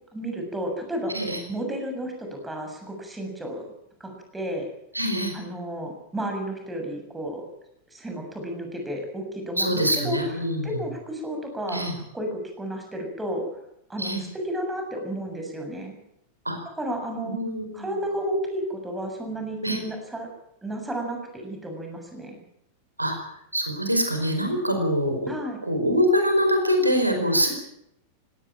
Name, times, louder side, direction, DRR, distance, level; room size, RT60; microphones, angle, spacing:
voice 1, 0.1-1.1 1.5-3.7 4.0-4.7 5.3-7.4 7.9-10.2 10.6-11.8 12.1-13.4 13.9-15.9 16.8-17.4 17.7-20.3 20.6-22.4 25.3-25.6, right 1 dB, 10° right, 3 dB, 7.1 m, -32 dB
voice 2, 4.9-5.3 9.6-10.8 11.7-11.9 14.0-14.2 16.4-16.6 17.2-17.9 19.6-19.8 23.0-25.3 25.6-27.5, equal, 85° right, 5 dB, 4.8 m, -24 dB
20.0 x 17.5 x 9.0 m, 0.78 s
figure-of-eight pair, 90°, 0 cm